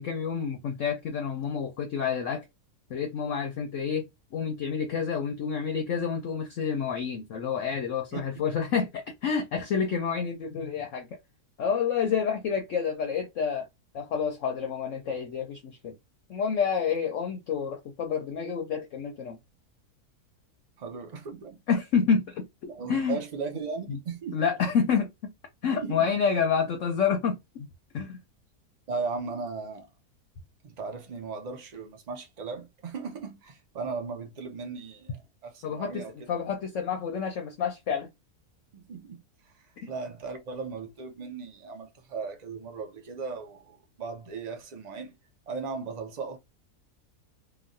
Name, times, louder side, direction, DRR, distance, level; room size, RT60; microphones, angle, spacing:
voice 1, 0.0-2.4 2.9-4.0 4.3-11.1 11.6-13.6 13.9-15.9 16.3-19.4 21.7-23.2 23.9-24.0 24.3-25.1 25.6-27.7 27.9-28.2 35.6-38.1 39.8-39.9, left 6 dB, 65° left, 0.8 m, -29 dB
voice 2, 8.1-8.4 20.8-21.6 22.7-24.4 25.7-26.1 28.9-29.9 30.6-36.3 38.7-45.2 45.5-46.4, right 5 dB, 70° right, 0.4 m, -37 dB
3.0 x 2.3 x 2.5 m
omnidirectional pair, 1.7 m